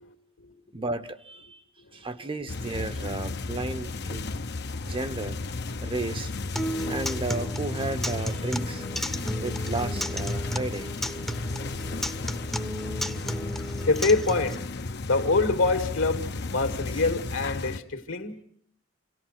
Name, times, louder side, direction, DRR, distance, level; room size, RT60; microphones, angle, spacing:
voice 1, 0.0-0.5 1.9-2.1 4.7-4.8 13.8-14.7 15.0-18.4, left 3 dB, 70° left, 2.0 m, -26 dB
voice 2, 0.7-1.6 1.9-4.3 4.8-5.4 5.8-6.3 6.9-8.9 9.4-10.9, right 2 dB, 25° right, 0.9 m, -33 dB
sound 1, 2.5-17.8, left 3 dB, 55° left, 0.9 m, -34 dB
Acoustic guitar, 6.6-14.5, equal, ahead, 0.8 m, -33 dB
27.0 x 18.0 x 5.8 m
head